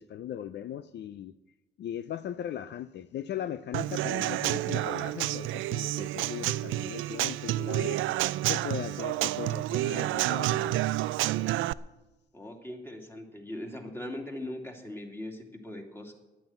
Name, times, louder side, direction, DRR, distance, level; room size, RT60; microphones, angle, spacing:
voice 1, 0.0-1.3 1.8-8.0 8.5-10.8, left 10 dB, 60° left, 0.5 m, -38 dB
Human voice / Acoustic guitar / Drum, 3.7-11.7, right 15 dB, 85° right, 0.4 m, -29 dB
voice 2, 12.3-16.1, left 1 dB, 10° left, 2.8 m, -40 dB
11.0 x 9.3 x 9.1 m
cardioid pair, 90°, 20 cm